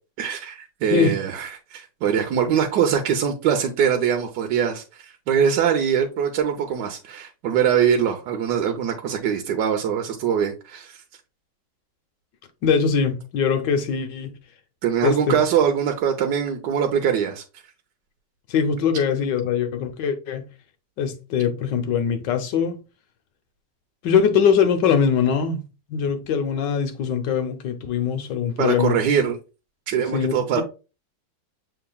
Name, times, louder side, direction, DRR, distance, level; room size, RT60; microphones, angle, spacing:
voice 1, 0.2-11.0 14.8-17.4 28.6-29.4 29.9-30.6, right 8 dB, 75° right, 1.3 m, -22 dB
voice 2, 12.6-14.4 15.0-15.4 18.5-20.5 21.0-22.8 24.0-25.6 25.9-29.0 30.1-30.6, left 7 dB, 80° left, 1.5 m, -22 dB
6.9 x 3.3 x 2.3 m
omnidirectional pair, 1.9 m